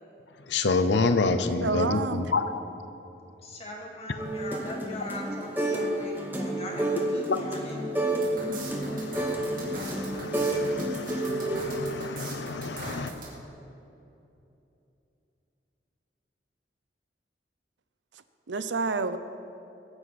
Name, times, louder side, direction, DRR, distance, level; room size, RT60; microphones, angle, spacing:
voice 1, 0.5-2.6 7.3-7.4 8.4-13.1, left 3 dB, 80° left, 9 dB, 0.7 m, -29 dB
voice 2, 1.6-2.2 18.5-19.2, right 4 dB, 85° right, 11 dB, 0.7 m, -28 dB
voice 3, 3.4-7.9, left 1 dB, 35° left, -1 dB, 2.2 m, -40 dB
sound 1, 4.2-5.9 6.2-11.6, right 1 dB, 10° right, 1.2 m, -30 dB
sound 2, 8.1-13.3, right 3 dB, 50° right, 3.0 m, -41 dB
22.5 x 9.9 x 4.2 m, 2.9 s
head